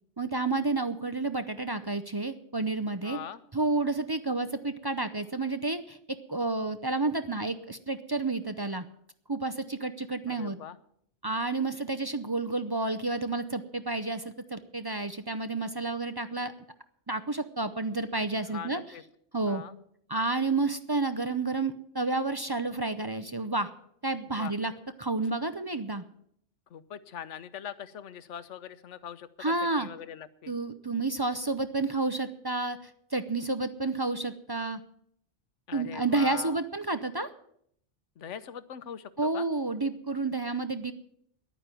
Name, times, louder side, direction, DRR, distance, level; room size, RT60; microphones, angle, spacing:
voice 1, 0.2-3.2 3.5-6.0 6.3-8.8 9.3-10.6 11.2-16.5 17.1-18.8 19.3-19.6 20.1-23.7 24.0-24.7 25.0-26.0 29.4-29.9 30.5-34.8 35.7-37.3 39.2-40.9, right 3 dB, 30° right, 10 dB, 0.5 m, -30 dB
voice 2, 3.0-3.4 10.3-10.8 18.5-19.0 19.5-19.7 24.3-24.5 26.7-30.5 35.7-36.6 38.2-39.5, left 9 dB, 80° left, 14 dB, 1.1 m, -42 dB
11.0 x 9.3 x 9.0 m, 0.69 s
omnidirectional pair, 1.2 m